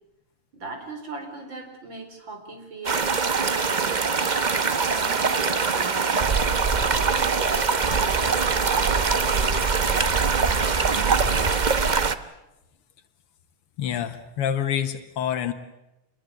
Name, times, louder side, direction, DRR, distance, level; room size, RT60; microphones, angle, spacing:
voice 1, 0.5-3.0 3.3-6.3 6.9-10.1 10.5-11.5, right 3 dB, 55° right, 4 dB, 5.1 m, -39 dB
sound 1, 2.8-12.1, right 5 dB, 75° right, 0.4 m, -22 dB
voice 2, 13.8-15.5, left 9 dB, 85° left, 8 dB, 2.1 m, -27 dB
27.5 x 21.5 x 7.8 m, 0.93 s
omnidirectional pair, 2.4 m